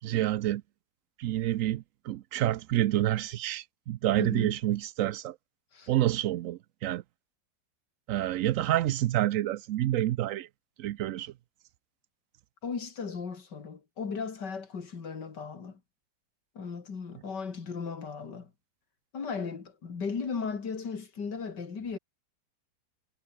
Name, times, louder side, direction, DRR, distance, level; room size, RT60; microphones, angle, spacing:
voice 1, 0.0-0.6 1.2-5.4 5.9-7.0 8.1-10.5 10.8-11.3, right 14 dB, 90° right, 0.7 m, -28 dB
voice 2, 4.2-4.5 5.7-5.9 12.6-15.8 16.5-18.5 19.1-22.0, left 5 dB, 65° left, 3.1 m, -36 dB
omnidirectional pair, 2.0 m